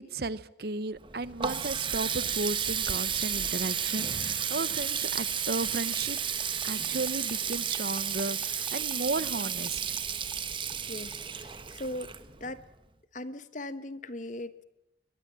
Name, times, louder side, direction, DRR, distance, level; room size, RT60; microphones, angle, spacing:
voice 1, 0.1-6.2 6.6-10.0, right 3 dB, 55° right, 17 dB, 0.9 m, -34 dB
Water tap faucet, 1.0-12.6, right 8 dB, 30° right, 1.2 m, -32 dB
sound 1, 5.6-10.0 10.3-10.4 10.7-10.8 11.1-11.2, right 2 dB, 10° right, 3.0 m, -50 dB
voice 2, 10.9-12.1 12.4-12.6 13.1-14.6, left 1 dB, 45° left, 14 dB, 1.2 m, -39 dB
23.0 x 20.0 x 7.6 m, 0.85 s
head